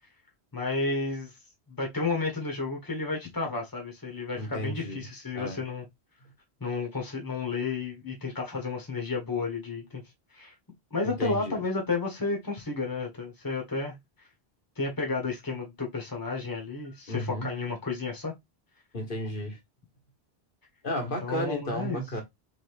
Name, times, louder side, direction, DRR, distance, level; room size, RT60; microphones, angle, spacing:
voice 1, 0.5-1.3 1.7-5.8 6.6-10.0 10.3-10.5 10.9-13.9 14.8-18.3 21.2-22.0, left 3 dB, 20° left, 1.5 m, -32 dB
voice 2, 4.4-5.0 5.3-5.6 11.0-11.6 17.1-17.5 18.9-19.6 20.8-22.2, equal, 55° left, 1.7 m, -33 dB
3.8 x 3.7 x 3.4 m
omnidirectional pair, 1.1 m